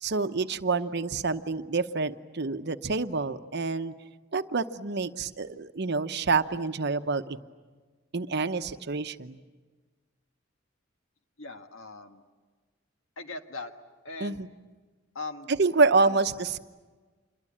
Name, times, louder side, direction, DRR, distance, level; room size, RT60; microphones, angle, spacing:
voice 1, 0.0-3.9 4.3-7.4 8.1-9.4 14.2-14.5 15.5-16.6, right 4 dB, 55° right, 10 dB, 0.9 m, -27 dB
voice 2, 11.4-12.2 13.2-13.7 14.1-14.4 15.2-15.5, left 3 dB, 90° left, 6 dB, 1.8 m, -39 dB
27.5 x 22.5 x 8.6 m, 1.4 s
head